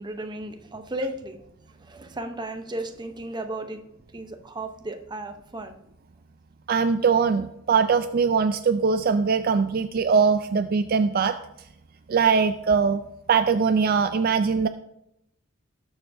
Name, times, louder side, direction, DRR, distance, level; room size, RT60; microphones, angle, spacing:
voice 1, 0.0-1.4 1.8-3.8 4.1-5.8, right 1 dB, 20° right, 6 dB, 0.7 m, -34 dB
voice 2, 6.7-11.4 12.1-13.0 13.3-14.7, right 5 dB, 45° right, 9 dB, 0.4 m, -21 dB
18.5 x 7.0 x 2.6 m, 0.81 s
head